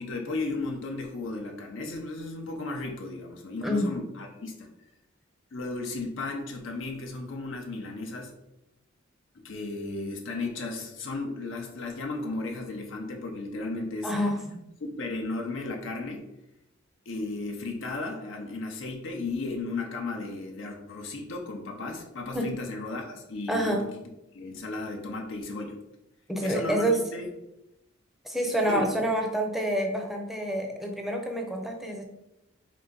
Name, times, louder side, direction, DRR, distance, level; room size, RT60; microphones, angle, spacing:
voice 1, 0.0-4.7 5.5-8.3 9.3-14.1 14.8-16.3 17.1-24.0 24.3-25.8 26.4-27.3 28.7-28.9, left 3 dB, 70° left, 2 dB, 0.7 m, -35 dB
voice 2, 3.6-4.0 14.0-14.4 22.3-22.5 23.5-23.8 26.3-27.0 28.2-32.0, right 1 dB, ahead, 2 dB, 0.6 m, -27 dB
4.7 x 2.6 x 3.8 m, 0.88 s
head